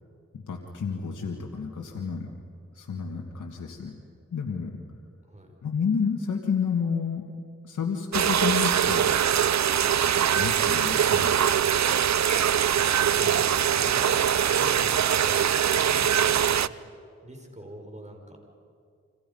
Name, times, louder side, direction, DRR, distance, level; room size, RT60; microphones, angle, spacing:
voice 1, 0.3-2.3 2.7-3.9 4.3-4.8 5.6-7.3 7.6-9.1 10.3-11.4 13.2-13.5, left 6 dB, 90° left, 0 dB, 1.8 m, -30 dB
voice 2, 5.2-5.6 12.7-13.4 13.7-16.7 17.2-18.4, right 1 dB, 25° right, 3 dB, 5.7 m, -44 dB
sound 1, 8.1-16.7, right 9 dB, 65° right, 0.6 m, -22 dB
29.5 x 26.0 x 5.5 m, 2.3 s
cardioid pair, 40°, 29 cm